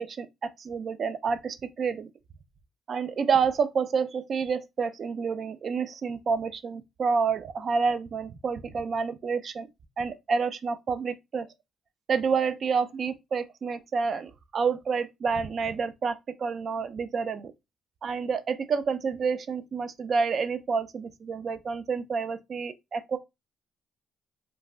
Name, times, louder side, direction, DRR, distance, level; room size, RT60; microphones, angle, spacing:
voice 1, 0.0-2.1 2.9-9.7 10.0-11.5 12.1-17.5 18.0-23.2, right 5 dB, 50° right, 0.3 m, -29 dB
3.3 x 2.1 x 2.4 m
cardioid pair, 90°, 0 cm